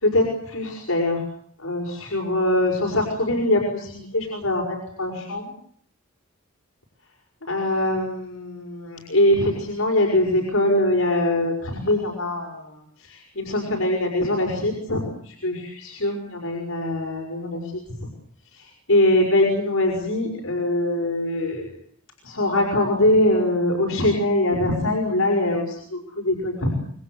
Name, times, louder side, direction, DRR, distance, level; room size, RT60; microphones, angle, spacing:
voice 1, 0.0-1.2 1.6-5.5 7.5-17.8 18.5-21.7 22.2-26.7, left 1 dB, 75° left, 0 dB, 5.9 m, -23 dB
27.0 x 22.0 x 8.0 m, 0.63 s
head